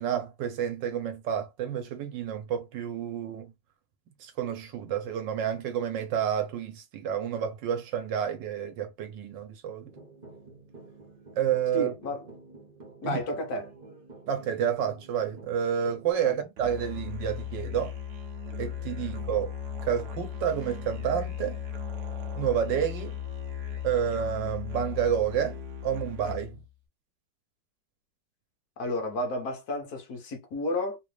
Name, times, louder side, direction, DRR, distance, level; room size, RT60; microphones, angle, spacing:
voice 1, 0.0-3.5 4.2-9.9 11.4-11.9 13.0-13.2 14.3-17.9 18.6-19.5 19.8-21.6 22.3-23.2 23.8-26.6, right 9 dB, 90° right, 1.6 m, -29 dB
sound 1, 9.8-16.1, right 3 dB, 30° right, 1.0 m, -50 dB
voice 2, 11.7-12.2 13.0-13.7 16.2-16.3 28.8-31.0, left 1 dB, 60° left, 1.4 m, -32 dB
Musical instrument, 16.6-26.7, left 8 dB, 70° right, 1.3 m, -37 dB
3.8 x 2.5 x 3.2 m
omnidirectional pair, 1.9 m